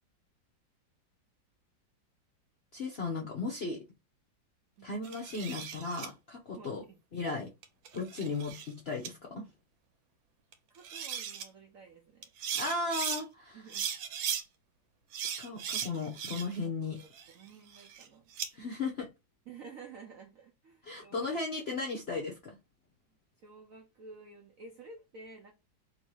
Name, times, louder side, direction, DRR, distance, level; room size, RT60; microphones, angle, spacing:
voice 1, 2.7-3.8 4.8-6.8 7.1-7.5 7.9-9.5 12.5-13.6 15.4-17.0 18.5-19.1 20.8-22.6, left 3 dB, 60° left, 0.6 m, -36 dB
sound 1, 5.0-6.1 7.6-8.7 9.0-9.1 10.5-10.6 10.8-11.5 12.2-13.2 13.7-14.4 15.1-16.6 17.0-18.5, right 8 dB, 90° right, 1.4 m, -37 dB
voice 2, 6.5-7.0 10.7-12.3 13.5-13.9 16.8-17.1 17.3-18.3 19.5-21.4 23.4-25.5, right 4 dB, 65° right, 0.8 m, -52 dB
3.1 x 2.8 x 4.5 m
omnidirectional pair, 2.0 m